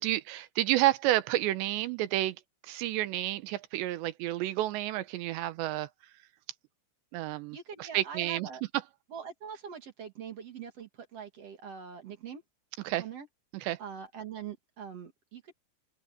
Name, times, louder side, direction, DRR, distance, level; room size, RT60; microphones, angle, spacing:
voice 1, 0.0-2.4 2.6-5.9 7.1-8.5 12.9-13.0 13.6-13.8, right 15 dB, 75° right, 3.1 m, -30 dB
voice 2, 7.5-8.6 9.1-12.4 13.0-13.3 13.8-15.5, right 7 dB, 50° right, 2.2 m, -43 dB
open air
omnidirectional pair, 5.2 m